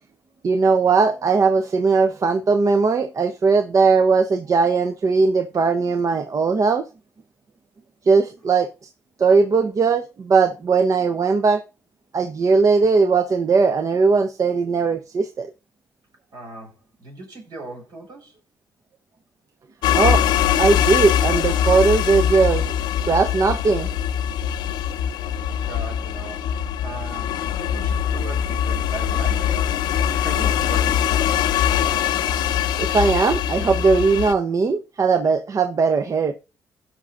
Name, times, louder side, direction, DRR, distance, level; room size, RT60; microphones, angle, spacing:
voice 1, 0.4-6.9 8.1-8.7 9.2-11.6 12.1-15.5 20.0-20.2 20.6-22.7 23.1-23.9 32.8-36.3, right 4 dB, 50° right, 0.7 m, -19 dB
voice 2, 16.3-18.4 25.5-31.5, right 2 dB, 75° right, 4.4 m, -38 dB
sound 1, 19.8-34.3, left 9 dB, 85° left, 0.5 m, -22 dB
16.5 x 5.9 x 2.5 m
cardioid pair, 65°, 7 cm